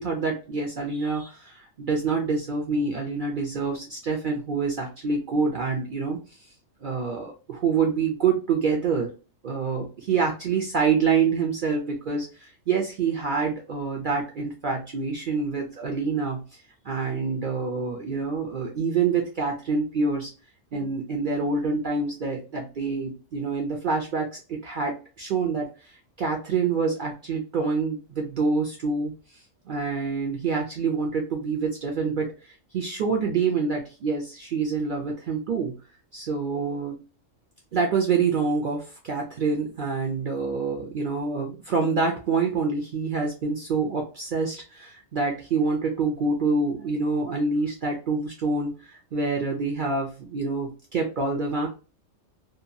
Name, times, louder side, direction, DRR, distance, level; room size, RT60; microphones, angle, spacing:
voice 1, 0.0-6.2 6.8-9.1 9.4-20.3 20.7-29.1 29.7-35.7 36.1-37.0 37.7-51.7, right 4 dB, 60° right, 1 dB, 0.5 m, -26 dB
2.8 x 2.2 x 2.5 m, 0.35 s
omnidirectional pair, 1.4 m